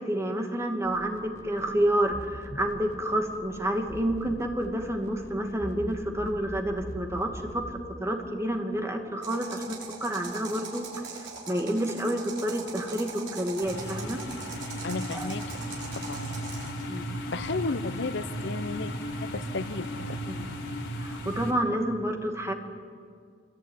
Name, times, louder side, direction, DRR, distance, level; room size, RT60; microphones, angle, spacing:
voice 1, 0.0-7.7 8.0-14.2 15.1-15.3 16.9-17.1 20.3-20.5 21.0-22.5, right 1 dB, 15° right, 3 dB, 2.4 m, -29 dB
sound 1, 0.8-7.7, equal, 15° left, 2.0 m, -43 dB
sound 2, 9.2-16.8, right 5 dB, 70° right, 6.6 m, -41 dB
sound 3, 13.6-21.5, equal, 80° left, 4.0 m, -35 dB
voice 2, 14.8-15.4 16.1-16.4 17.3-18.9 19.2-20.2, left 3 dB, 65° left, 13 dB, 0.9 m, -33 dB
26.0 x 22.5 x 9.6 m, 2.2 s
head